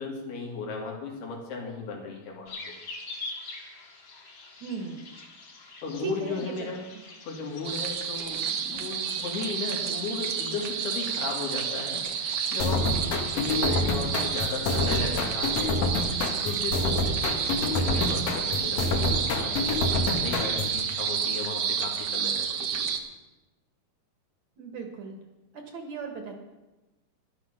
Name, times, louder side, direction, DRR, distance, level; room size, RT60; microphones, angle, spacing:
voice 1, 0.0-2.7 5.8-6.8 7.2-15.8 16.4-17.4 17.7-22.9, left 4 dB, 85° left, -1 dB, 4.6 m, -36 dB
sound 1, 2.5-21.5, left 3 dB, 40° left, 2.0 m, -47 dB
voice 2, 4.6-5.0 6.0-6.7 6.9-7.0 24.6-25.2 25.5-26.3, right 6 dB, 60° right, 4 dB, 2.2 m, -37 dB
sound 2, 7.6-23.0, right 7 dB, 80° right, 1.4 m, -30 dB
sound 3, 12.6-20.8, left 2 dB, 65° left, 1.7 m, -28 dB
13.5 x 11.5 x 5.9 m, 1.1 s
omnidirectional pair, 4.4 m